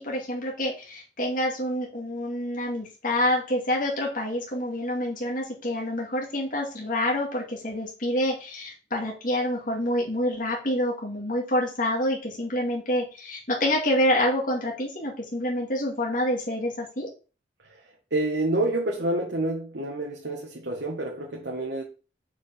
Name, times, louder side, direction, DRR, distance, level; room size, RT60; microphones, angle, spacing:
voice 1, 0.0-17.1, left 1 dB, 50° left, 2.3 m, -27 dB
voice 2, 17.6-21.8, right 2 dB, 75° right, 1.6 m, -28 dB
6.5 x 4.9 x 5.8 m
head